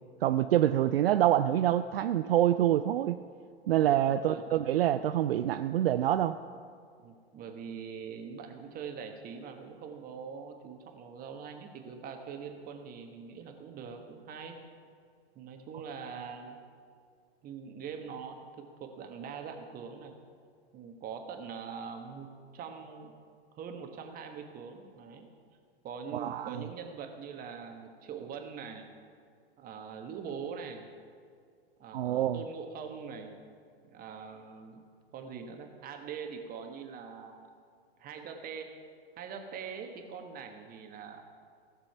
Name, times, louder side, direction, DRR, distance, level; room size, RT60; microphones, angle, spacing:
voice 1, 0.2-3.2 3.7-6.4 26.1-26.5 31.9-32.4, right 12 dB, 65° right, 10 dB, 0.5 m, -26 dB
voice 2, 3.8-4.5 7.0-14.5 15.3-16.6 17.4-20.1 20.7-23.1 23.5-25.3 25.8-28.9 29.6-30.9 31.8-33.4 33.8-34.8 35.1-37.5 38.0-38.7 39.2-41.2, right 6 dB, 30° right, 4 dB, 1.5 m, -43 dB
16.0 x 6.9 x 5.7 m, 2.2 s
figure-of-eight pair, 105°, 32 cm